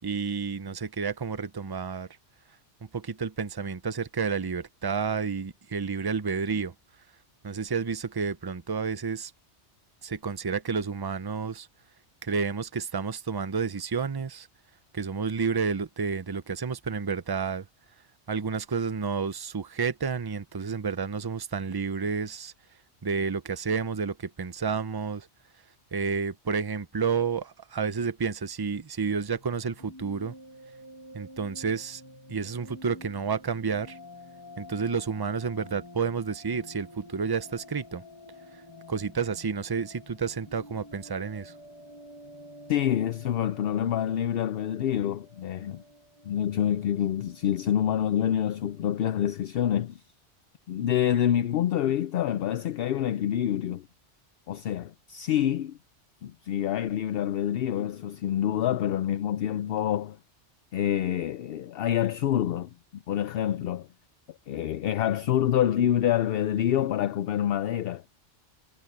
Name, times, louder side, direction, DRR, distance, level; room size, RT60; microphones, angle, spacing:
voice 1, 0.0-2.1 2.9-6.7 7.4-9.3 10.0-11.7 12.2-14.5 14.9-17.7 18.3-22.5 23.0-25.3 25.9-30.3 31.1-32.0 32.3-34.0 34.6-38.0 38.9-41.5, right 5 dB, 25° right, 0.6 m, -30 dB
sound 1, 29.3-48.9, left 1 dB, 20° left, 1.6 m, -49 dB
voice 2, 42.7-45.8 46.2-50.0 50.7-53.9 54.5-55.8 56.2-60.2 60.7-63.9 64.5-68.0, left 10 dB, 65° left, 0.7 m, -27 dB
omnidirectional pair, 1.2 m